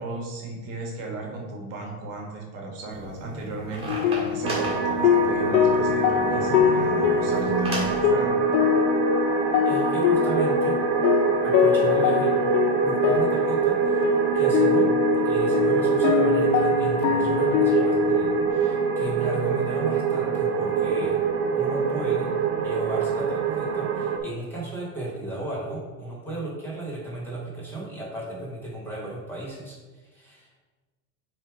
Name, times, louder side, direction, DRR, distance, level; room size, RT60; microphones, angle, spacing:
voice 1, 0.0-8.4, right 2 dB, 35° right, -1 dB, 1.3 m, -36 dB
sound 1, 2.9-8.0, right 1 dB, 15° right, 1.8 m, -34 dB
sound 2, 3.9-18.5, left 9 dB, 60° left, 0.5 m, -24 dB
sound 3, 4.4-24.2, right 5 dB, 50° right, 0.7 m, -24 dB
voice 2, 9.6-10.8 11.4-12.3 12.8-14.0 14.3-14.9 15.2-21.2 21.5-22.3 22.6-30.6, right 2 dB, 5° left, -6 dB, 0.9 m, -34 dB
6.7 x 3.4 x 4.5 m, 1.3 s
supercardioid pair, 175°, 42 cm